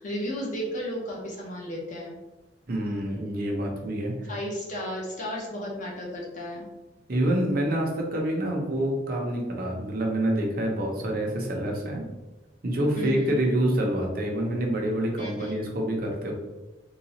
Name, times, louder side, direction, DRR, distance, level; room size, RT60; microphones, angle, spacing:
voice 1, 0.0-2.1 4.3-6.7 13.0-13.3 15.2-15.5, equal, 45° left, -3 dB, 0.9 m, -34 dB
voice 2, 2.7-4.3 7.1-12.0 12.6-16.3, right 1 dB, 55° right, 0 dB, 0.7 m, -27 dB
3.8 x 2.3 x 2.8 m, 1.1 s
head